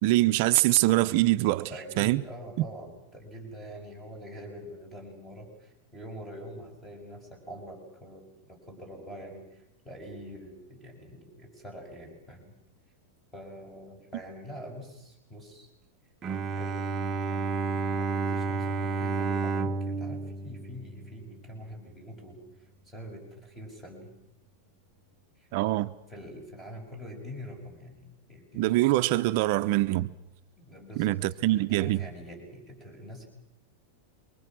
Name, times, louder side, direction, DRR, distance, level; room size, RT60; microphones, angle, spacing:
voice 1, 0.0-1.7 2.0-2.2 25.5-25.9 28.5-30.1 31.0-32.0, right 17 dB, 50° right, 0.8 m, -24 dB
voice 2, 1.7-12.6 13.3-15.7 16.5-24.1 25.4-25.5 26.1-28.8 30.6-33.3, equal, 10° left, 6.6 m, -45 dB
Bowed string instrument, 16.2-21.5, right 4 dB, 20° right, 1.0 m, -31 dB
28.0 x 24.5 x 6.2 m
supercardioid pair, 150°, 0 cm